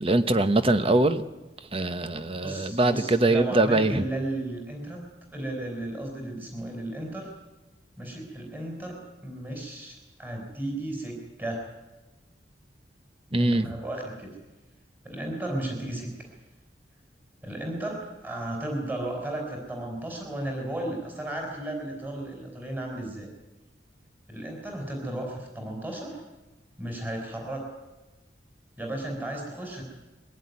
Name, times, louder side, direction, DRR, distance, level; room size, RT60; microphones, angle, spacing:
voice 1, 0.0-1.2 1.7-4.1 13.3-13.7, right 2 dB, 30° right, 11 dB, 1.0 m, -23 dB
voice 2, 2.4-5.0 5.3-7.3 8.0-11.6 13.3-14.4 15.0-16.1 17.4-23.3 24.3-26.2 26.8-27.7 28.8-29.8, right 1 dB, 10° right, 1 dB, 4.6 m, -34 dB
22.5 x 16.0 x 9.6 m, 1.1 s
head